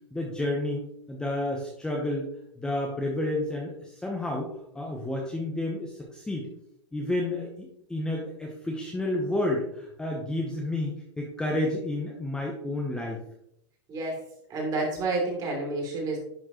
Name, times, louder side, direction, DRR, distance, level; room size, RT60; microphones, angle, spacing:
voice 1, 0.1-0.8 1.1-2.3 2.6-6.5 6.9-13.2, left 1 dB, 5° left, -1 dB, 0.8 m, -30 dB
voice 2, 13.9-14.2 14.5-16.2, right 2 dB, 25° right, -2 dB, 3.0 m, -29 dB
10.5 x 4.4 x 3.0 m, 0.75 s
supercardioid pair, 150°, 14 cm